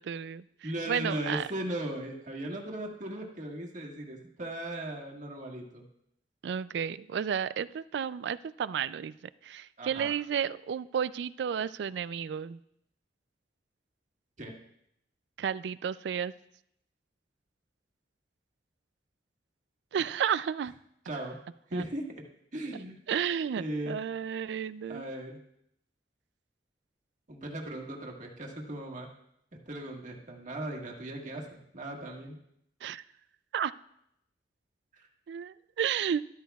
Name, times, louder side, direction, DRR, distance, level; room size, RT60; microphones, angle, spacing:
voice 1, 0.0-0.4 0.9-1.5 6.4-9.1 9.4-12.6 15.4-16.3 19.9-20.7 21.7-21.8 23.1-25.0 32.8-33.0 33.5-33.7 35.3-36.2, right 8 dB, 70° right, 17 dB, 0.3 m, -32 dB
voice 2, 0.6-5.8 9.8-10.1 14.4-14.5 21.1-21.4 21.7-22.2 22.5-23.0 23.6-24.0 24.9-25.4 27.3-29.1 29.7-32.4 34.9-35.1, right 1 dB, 45° right, 0 dB, 1.6 m, -37 dB
13.5 x 12.5 x 2.3 m, 0.76 s
head